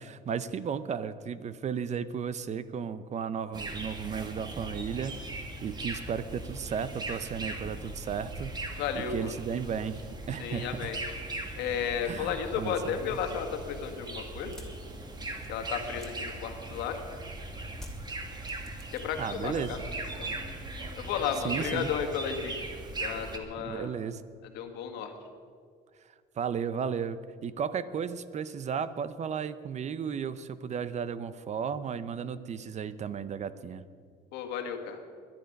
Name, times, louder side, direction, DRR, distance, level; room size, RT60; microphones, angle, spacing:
voice 1, 0.0-10.9 12.0-12.9 19.2-19.7 21.4-21.9 23.6-24.2 26.4-33.8, right 7 dB, 40° right, 14 dB, 0.7 m, -34 dB
sound 1, 3.5-23.4, right 2 dB, 25° right, 1.9 m, -39 dB
voice 2, 8.8-9.3 10.4-11.0 11.6-14.5 15.5-17.0 18.9-19.8 20.2-20.3 21.0-22.7 23.0-23.9 24.5-25.1 34.3-35.0, left 7 dB, 90° left, 5 dB, 1.8 m, -33 dB
sound 2, 14.5-17.1 17.7-19.3 19.6-20.1, left 1 dB, 5° left, 2.5 m, -49 dB
21.5 x 10.5 x 5.3 m, 2.1 s
cardioid pair, 110°, 17 cm